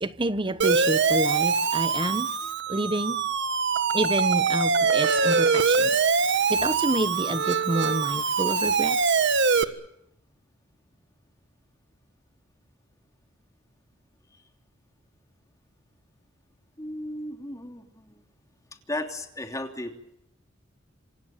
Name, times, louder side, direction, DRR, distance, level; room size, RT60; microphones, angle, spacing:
voice 1, 0.0-2.3 2.7-3.2 3.9-6.0 6.5-9.2, right 2 dB, 25° right, 1.0 m, -28 dB
Siren, 0.6-9.6, right 5 dB, 60° right, 1.5 m, -23 dB
voice 2, 16.8-18.2 18.9-20.1, left 1 dB, 15° left, 3.1 m, -35 dB
27.0 x 26.5 x 7.3 m
head